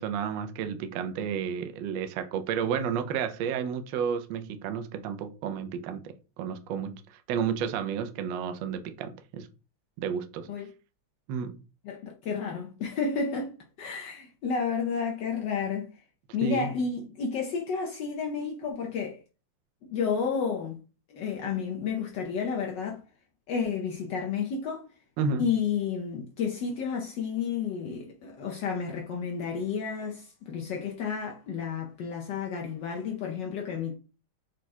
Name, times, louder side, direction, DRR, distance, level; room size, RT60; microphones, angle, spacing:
voice 1, 0.0-7.0 7.3-9.5 10.0-10.5 11.3-11.6 16.4-16.7 25.2-25.5, right 7 dB, 75° right, 1.2 m, -31 dB
voice 2, 11.8-13.5 13.8-15.9 16.3-19.2 19.9-20.8 21.1-23.0 23.5-24.9 25.4-33.9, left 6 dB, 70° left, 1.2 m, -31 dB
4.7 x 2.2 x 4.2 m
omnidirectional pair, 2.3 m